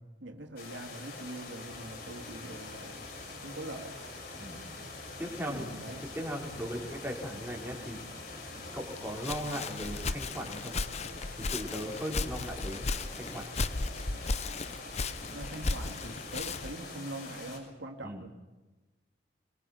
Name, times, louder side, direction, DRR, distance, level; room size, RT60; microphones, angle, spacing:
voice 1, 0.0-4.0 5.5-6.0 15.2-18.3, right 1 dB, 80° right, 3 dB, 2.5 m, -43 dB
sound 1, 0.6-17.6, left 3 dB, 55° left, 6.4 m, -45 dB
sound 2, 1.7-16.4, equal, 35° right, 3.4 m, -52 dB
voice 2, 4.4-4.7 5.2-5.8 6.1-8.0 8.7-10.7 11.3-12.8 13.1-13.5 18.0-18.2, equal, 10° right, -1 dB, 4.4 m, -38 dB
Walk footsteps, 8.9-16.8, left 3 dB, 35° left, 0.8 m, -35 dB
24.5 x 22.0 x 5.9 m, 1.2 s
head